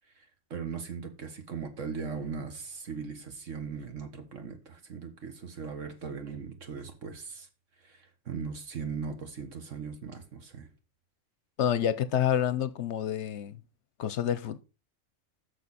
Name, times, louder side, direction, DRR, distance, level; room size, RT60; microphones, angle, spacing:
voice 1, 0.5-7.5 7.8-10.7, right 5 dB, 70° right, 1.9 m, -39 dB
voice 2, 11.6-13.6 14.0-14.6, left 9 dB, 65° left, 0.9 m, -28 dB
9.3 x 6.5 x 4.1 m
omnidirectional pair, 1.4 m